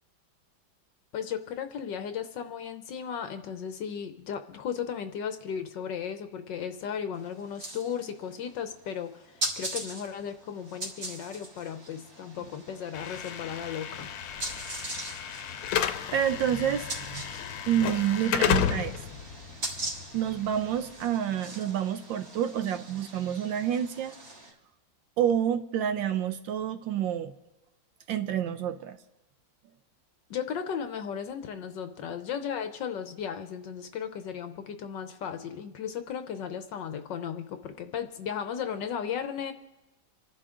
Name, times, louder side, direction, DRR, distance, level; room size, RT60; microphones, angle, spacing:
voice 1, 1.1-14.1 30.3-39.5, left 8 dB, 65° left, 8 dB, 1.3 m, -35 dB
sound 1, 7.1-24.5, right 1 dB, 40° right, 2.5 m, -41 dB
Slam / Alarm, 12.9-21.0, left 9 dB, 80° left, 1.5 m, -32 dB
voice 2, 16.1-17.2 17.7-19.0 20.1-24.1 25.2-27.3 28.1-29.0, right 9 dB, 70° right, 9 dB, 1.2 m, -28 dB
27.5 x 11.5 x 3.7 m, 1.0 s
omnidirectional pair, 2.4 m